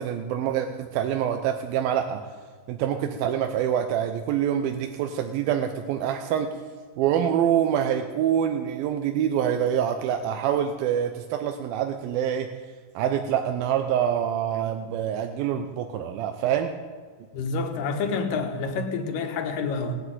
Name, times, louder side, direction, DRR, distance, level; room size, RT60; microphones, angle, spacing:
voice 1, 0.0-2.2 2.7-6.5 7.0-12.5 13.0-16.7, right 9 dB, 75° right, 6 dB, 2.5 m, -25 dB
voice 2, 17.3-20.0, left 4 dB, 65° left, 5 dB, 2.9 m, -28 dB
18.5 x 8.5 x 9.2 m, 1.5 s
omnidirectional pair, 4.4 m